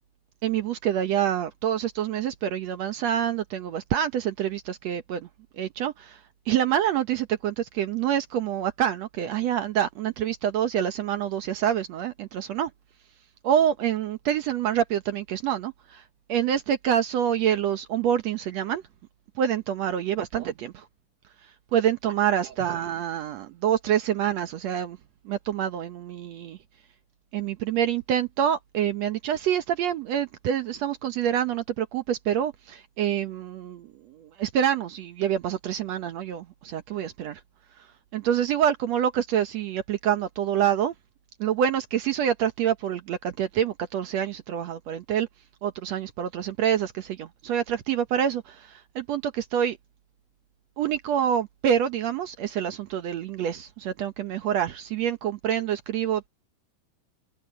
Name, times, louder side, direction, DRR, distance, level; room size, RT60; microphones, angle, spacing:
voice 1, 0.4-5.3 5.5-6.2 6.5-12.7 13.4-16.0 16.3-18.8 19.4-20.7 21.7-25.0 25.3-26.6 27.3-37.4 38.1-40.9 41.4-45.3 45.6-49.8 50.8-56.3, right 9 dB, 65° right, 1.9 m, -26 dB
omnidirectional pair, 3.8 m